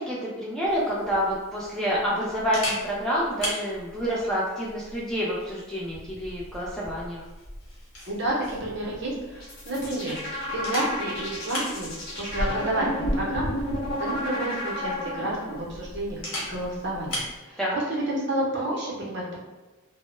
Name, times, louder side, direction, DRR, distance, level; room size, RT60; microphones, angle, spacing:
voice 1, 0.0-7.2 17.6-17.8, equal, ahead, -7 dB, 0.3 m, -28 dB
Camera, 0.7-17.4, left 1 dB, 80° left, 0.9 m, -37 dB
voice 2, 8.1-10.2 10.5-11.9 12.2-13.5 13.9-16.2 16.5-19.3, right 1 dB, 55° right, -4 dB, 0.7 m, -30 dB
sound 1, 9.3-15.6, left 1 dB, 50° left, 0.6 m, -32 dB
2.1 x 2.0 x 3.0 m, 1.2 s
head